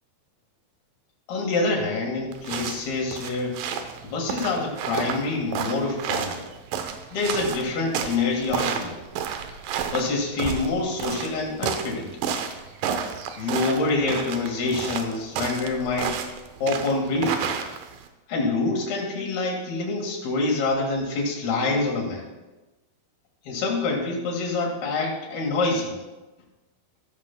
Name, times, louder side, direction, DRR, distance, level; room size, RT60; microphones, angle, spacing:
voice 1, 1.3-3.6 4.0-6.4 7.1-8.9 9.9-12.2 13.4-16.2 16.6-17.5 18.3-22.3 23.5-25.9, left 3 dB, 80° left, -1 dB, 3.8 m, -26 dB
sound 1, 2.3-18.1, right 7 dB, 75° right, 2.1 m, -31 dB
14.5 x 13.5 x 2.2 m, 1.1 s
omnidirectional pair, 4.5 m